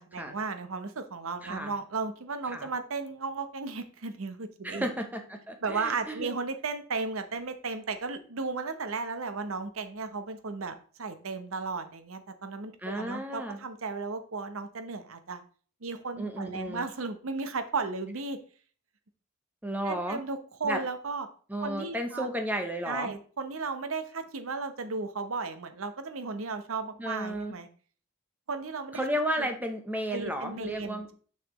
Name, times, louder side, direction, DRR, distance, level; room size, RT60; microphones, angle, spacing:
voice 1, 0.0-4.9 5.6-15.4 15.8-18.4 19.8-21.3 21.6-22.3 22.9-27.7 28.5-29.0 29.4-29.5 30.1-31.1, right 4 dB, 75° right, 9 dB, 0.8 m, -35 dB
voice 2, 1.4-1.7 2.5-2.7 4.6-6.4 12.8-13.6 16.2-16.8 19.6-20.2 20.6-20.8 21.5-23.1 27.0-27.5 28.9-31.1, equal, 10° right, 5 dB, 0.7 m, -33 dB
6.5 x 5.6 x 3.0 m, 0.42 s
head